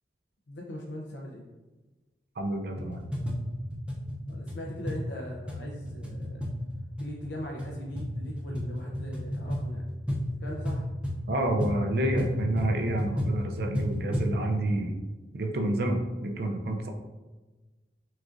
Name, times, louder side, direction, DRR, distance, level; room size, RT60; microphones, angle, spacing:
voice 1, 0.5-1.5 4.3-6.5 7.0-9.9 10.4-10.9, left 1 dB, 75° left, -2 dB, 0.5 m, -40 dB
voice 2, 2.4-3.0 11.3-15.0 15.3-16.9, right 1 dB, 60° right, 3 dB, 0.5 m, -29 dB
sound 1, 2.7-14.4, equal, 5° right, 0.6 m, -33 dB
6.0 x 2.4 x 2.5 m, 1.2 s
head